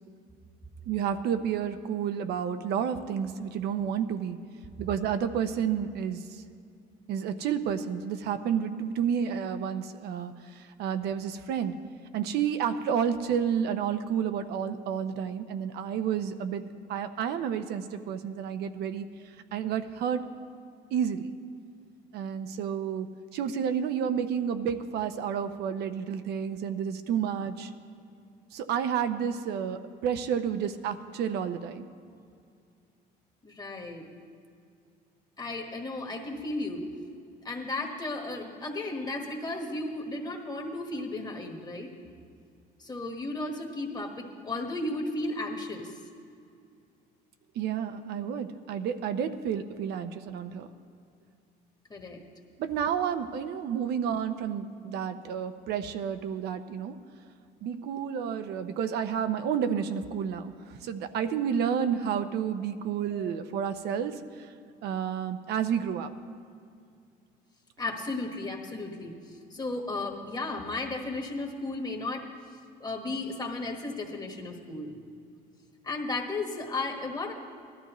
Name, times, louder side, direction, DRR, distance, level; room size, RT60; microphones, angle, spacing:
voice 1, 0.9-4.4 4.8-6.4 7.1-11.7 12.1-16.6 16.9-19.0 19.5-20.3 20.9-21.4 22.1-23.1 23.3-27.7 28.5-31.9 47.6-50.7 52.6-57.0 57.6-64.5 64.8-66.1, right 8 dB, 70° right, 8 dB, 0.6 m, -30 dB
voice 2, 33.4-34.0 35.4-36.9 37.4-41.9 42.8-45.9 47.8-47.9 51.9-52.2 63.1-63.4 67.8-72.3 72.8-75.0 75.8-77.3, left 2 dB, 25° left, 2 dB, 1.3 m, -34 dB
18.5 x 13.0 x 3.0 m, 2.4 s
cardioid pair, 125°, 17 cm